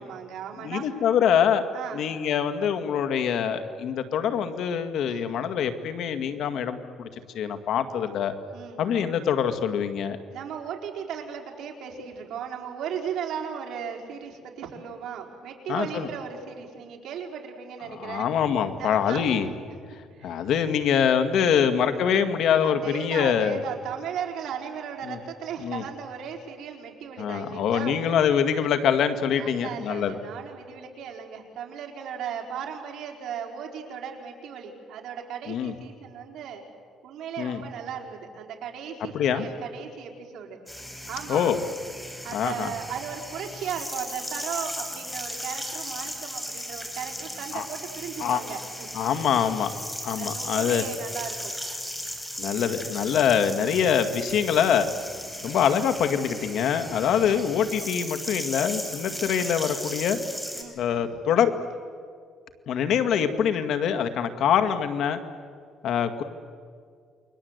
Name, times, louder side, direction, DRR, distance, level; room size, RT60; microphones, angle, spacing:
voice 1, 0.0-0.9 1.7-2.0 5.0-5.3 8.5-8.8 10.3-18.3 18.8-19.8 20.1-20.4 21.3-21.6 22.6-28.0 29.4-36.6 37.0-40.6 41.1-41.5 42.2-48.9 50.2-51.5 57.0-57.6 59.1-59.3 60.5-61.5, right 8 dB, 65° right, 2 dB, 4.4 m, -36 dB
voice 2, 0.6-1.6 1.9-7.1 7.3-8.3 8.8-10.2 15.7-16.1 17.9-19.5 20.2-23.6 25.1-25.2 25.6-25.8 27.2-30.2 35.5-35.7 37.4-37.6 39.1-39.5 41.3-41.6 42.3-42.7 47.5-47.6 48.2-48.4 48.9-49.7 50.0-50.8 52.4-54.9 55.4-60.2 60.8-61.5 62.7-65.2 65.8-66.2, left 8 dB, 65° left, 9 dB, 1.9 m, -24 dB
sound 1, 40.7-60.6, equal, 5° left, 4.1 m, -36 dB
29.0 x 23.0 x 8.1 m, 2.1 s
cardioid pair, 140°, 0 cm